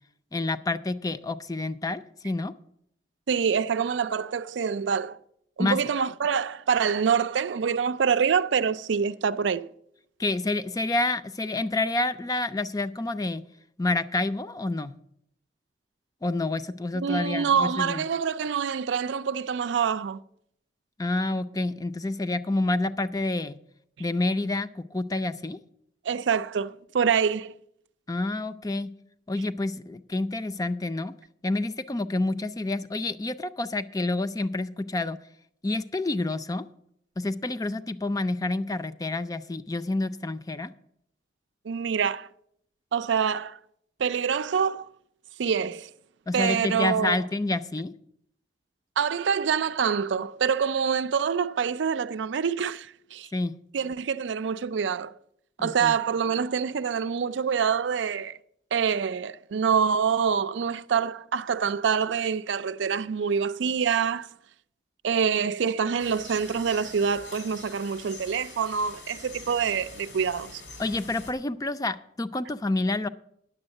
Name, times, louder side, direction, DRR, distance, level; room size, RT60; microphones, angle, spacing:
voice 1, 0.3-2.5 5.6-5.8 10.2-13.4 13.8-14.9 16.2-18.0 21.0-23.6 24.0-25.6 28.1-28.9 29.3-31.1 31.4-35.2 35.6-36.6 37.2-40.7 46.3-47.9 53.3-53.5 55.6-55.9 70.8-73.1, left 2 dB, 20° left, 0.4 m, -28 dB
voice 2, 3.3-5.2 5.6-9.7 16.9-20.2 26.0-27.5 41.7-42.3 42.9-43.6 44.0-44.9 45.4-45.9 46.3-47.2 49.0-53.3 53.7-55.2 55.6-58.4 58.7-64.3 65.0-70.6, right 6 dB, 90° right, 0.4 m, -26 dB
sound 1, 66.0-71.3, left 3 dB, 85° left, 2.6 m, -45 dB
9.9 x 7.1 x 7.7 m
head